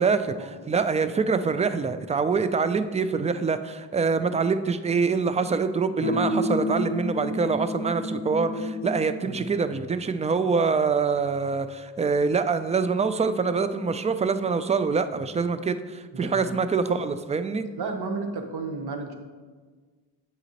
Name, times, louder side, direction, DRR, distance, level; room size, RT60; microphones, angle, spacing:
voice 1, 0.0-0.5 6.0-6.2 9.2-9.4 16.1-16.6 17.8-19.1, right 3 dB, 60° right, 5 dB, 1.0 m, -33 dB
voice 2, 0.7-17.7, right 5 dB, 15° right, 11 dB, 0.3 m, -25 dB
sound 1, 6.0-9.2, left 1 dB, 25° left, 0.8 m, -29 dB
7.9 x 5.1 x 2.9 m, 1.4 s
supercardioid pair, 60°, 44 cm